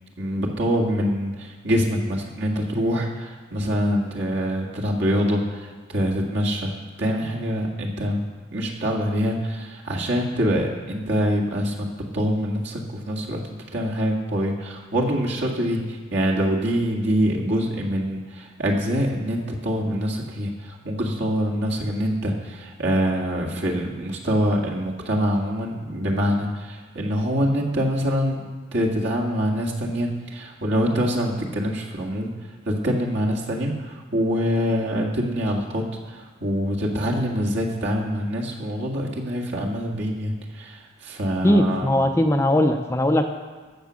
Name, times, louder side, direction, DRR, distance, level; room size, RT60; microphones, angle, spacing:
voice 1, 0.2-6.7 7.0-8.2 8.5-28.4 28.7-32.3 32.6-42.0, equal, 55° right, -2 dB, 2.0 m, -25 dB
voice 2, 41.4-43.2, left 1 dB, 15° left, 5 dB, 0.6 m, -19 dB
14.5 x 7.1 x 6.3 m, 1.4 s
head